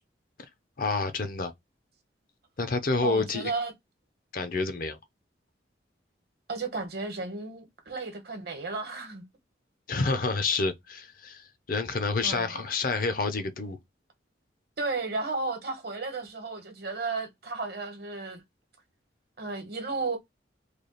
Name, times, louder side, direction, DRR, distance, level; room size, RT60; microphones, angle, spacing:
voice 1, 0.8-1.5 2.6-3.5 4.3-5.0 9.9-13.8, left 3 dB, 50° left, 0.6 m, -28 dB
voice 2, 3.0-3.7 6.5-9.2 12.2-12.6 14.8-18.4 19.4-20.2, right 3 dB, 55° right, 1.1 m, -33 dB
3.2 x 2.3 x 3.9 m
head